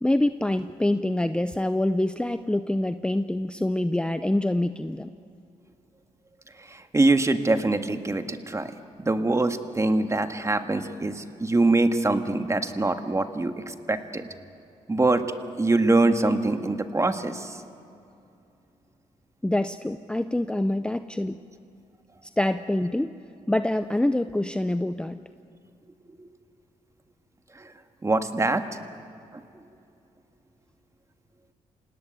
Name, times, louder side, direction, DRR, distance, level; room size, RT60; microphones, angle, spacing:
voice 1, 0.0-5.1 19.4-21.4 22.2-23.1 23.5-25.2, left 1 dB, 5° left, 10 dB, 0.6 m, -25 dB
voice 2, 6.7-8.7 9.0-14.3 14.9-17.6 27.5-27.7 28.0-28.6 29.3-29.4, right 2 dB, 20° right, 7 dB, 1.7 m, -24 dB
27.5 x 18.0 x 9.0 m, 2.6 s
cardioid pair, 70°, 13 cm